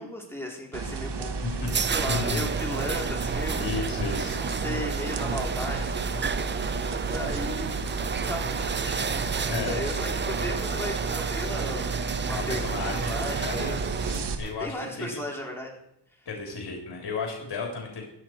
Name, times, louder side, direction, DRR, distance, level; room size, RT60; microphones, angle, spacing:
voice 1, 0.0-1.4 1.9-3.6 4.4-7.9 8.2-13.8 14.6-15.7 16.2-16.3, left 1 dB, 5° left, -1 dB, 3.8 m, -36 dB
sound 1, 0.7-14.4, right 4 dB, 75° right, 1.8 m, -32 dB
sound 2, 1.0-14.6, right 5 dB, 25° right, 0.5 m, -32 dB
voice 2, 2.1-2.5 3.6-4.4 9.5-9.8 12.5-13.1 13.4-13.7 14.4-15.2 16.3-18.1, left 4 dB, 65° left, 1 dB, 3.5 m, -33 dB
15.5 x 10.5 x 4.6 m, 0.79 s
cardioid pair, 90°, 42 cm